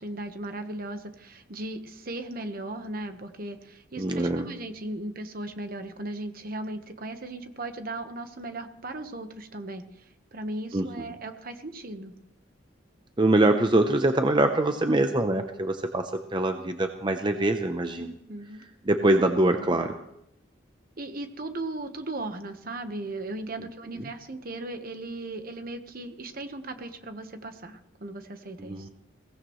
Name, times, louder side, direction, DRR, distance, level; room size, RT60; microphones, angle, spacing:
voice 1, 0.0-12.1 18.0-18.6 19.2-19.8 21.0-28.9, right 2 dB, 50° right, 8 dB, 1.2 m, -37 dB
voice 2, 4.0-4.5 10.7-11.1 13.2-18.1 18.9-19.9 28.6-28.9, right 2 dB, 25° right, 6 dB, 0.7 m, -24 dB
22.0 x 17.5 x 3.1 m, 0.82 s
head